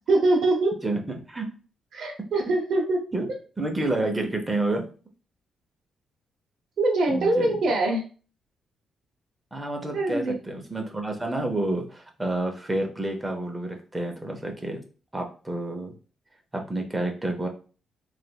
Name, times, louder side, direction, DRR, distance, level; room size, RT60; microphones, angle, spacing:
voice 1, 0.1-0.7 1.9-3.0 6.8-8.0 9.9-10.4, right 2 dB, 55° right, 0 dB, 0.7 m, -23 dB
voice 2, 0.8-1.5 3.1-3.3 3.6-4.8 7.1-7.6 9.5-14.8 15.1-15.9 16.5-17.5, right 2 dB, 10° right, 3 dB, 0.6 m, -29 dB
3.2 x 2.9 x 2.2 m, 0.37 s
cardioid pair, 165°, 0 cm